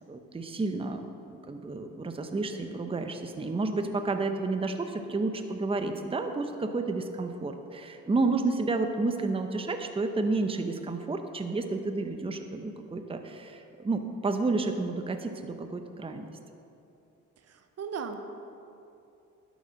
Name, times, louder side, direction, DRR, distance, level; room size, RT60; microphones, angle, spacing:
voice 1, 0.1-16.3, right 3 dB, 20° right, 6 dB, 0.8 m, -31 dB
voice 2, 17.4-18.2, right 6 dB, 55° right, 7 dB, 0.9 m, -37 dB
11.5 x 7.0 x 6.4 m, 2.8 s
cardioid pair, 90°, 30 cm